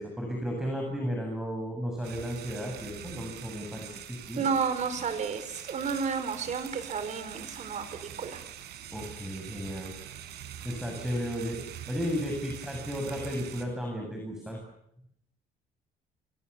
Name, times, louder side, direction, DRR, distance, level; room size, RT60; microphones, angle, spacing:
voice 1, 0.0-4.5 8.9-9.9 10.6-14.6, equal, 5° right, 1 dB, 8.0 m, -34 dB
sound 1, 2.0-13.7, right 10 dB, 75° right, 5.1 m, -44 dB
voice 2, 4.4-8.4, right 6 dB, 45° right, 9 dB, 5.0 m, -31 dB
29.5 x 24.5 x 7.1 m, 0.74 s
cardioid pair, 110°, 17 cm